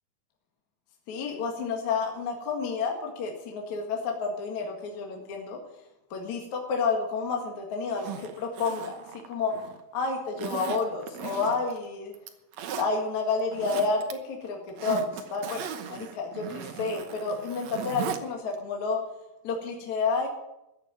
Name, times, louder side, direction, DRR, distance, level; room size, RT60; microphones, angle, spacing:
voice 1, 1.1-5.6 6.1-9.0 9.3-9.5 9.9-12.1 12.8-19.0 19.4-20.3, left 4 dB, 55° left, 1 dB, 2.9 m, -30 dB
Zipper (clothing), 7.9-9.8 10.4-11.8 12.1-12.9 13.4-14.1 14.4-18.2 18.5-18.6, right 9 dB, 75° right, 1.6 m, -38 dB
14.5 x 8.5 x 9.0 m, 0.91 s
omnidirectional pair, 4.5 m